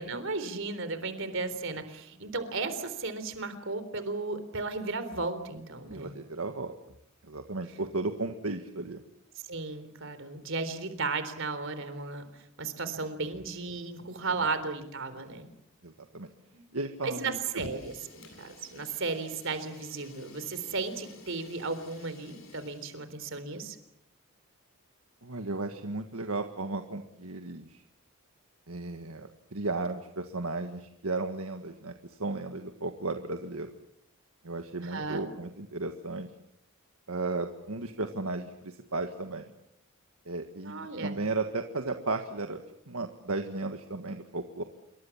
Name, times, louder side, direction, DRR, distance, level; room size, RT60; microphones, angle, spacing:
voice 1, 0.0-6.1 9.5-15.5 16.5-16.6 17.0-23.8 34.8-35.3 40.6-41.2, right 3 dB, 60° right, 11 dB, 3.7 m, -35 dB
voice 2, 5.9-6.7 7.2-9.0 12.9-13.0 14.0-14.1 15.8-16.3 16.7-17.4 25.2-27.8 28.7-33.7 34.4-36.3 37.1-39.5 40.2-42.6 42.9-44.6, right 3 dB, 75° right, 6 dB, 1.7 m, -35 dB
Fire, 17.5-23.1, left 2 dB, 70° left, 7.7 m, -51 dB
27.5 x 23.5 x 7.3 m, 0.77 s
head